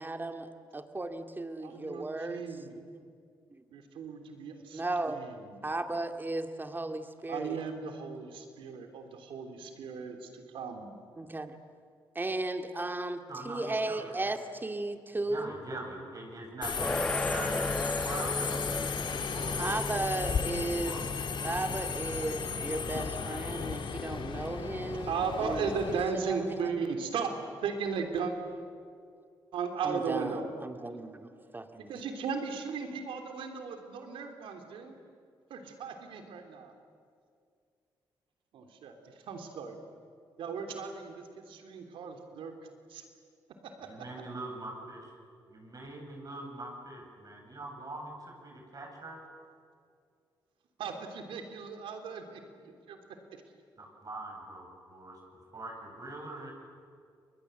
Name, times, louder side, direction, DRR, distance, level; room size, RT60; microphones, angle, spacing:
voice 1, 0.0-2.4 2.7-3.0 3.5-3.6 4.7-5.2 5.6-7.6 11.2-11.6 12.1-15.5 19.6-21.0 21.4-25.1 25.4-26.8 29.8-31.9, right 2 dB, 25° right, 6 dB, 2.2 m, -35 dB
voice 2, 1.6-2.8 3.7-4.8 5.1-5.7 7.3-10.9 25.0-27.3 27.6-28.3 29.5-30.5 31.9-35.0 35.5-36.7 38.5-39.8 40.4-42.6 42.9-43.0 43.6-43.9 50.8-53.0, right 5 dB, 85° right, 5 dB, 3.3 m, -36 dB
voice 3, 13.3-14.4 15.3-19.8 20.6-21.1 43.8-45.1 45.5-49.2 53.8-55.2 55.5-56.5, right 2 dB, 45° right, 1 dB, 7.8 m, -43 dB
Subway metro underground, 16.6-26.1, left 6 dB, 65° left, 2.0 m, -35 dB
sound 1, 16.8-27.7, left 1 dB, 10° left, 1.1 m, -39 dB
30.0 x 22.0 x 8.0 m, 2.3 s
cardioid pair, 65°, 9 cm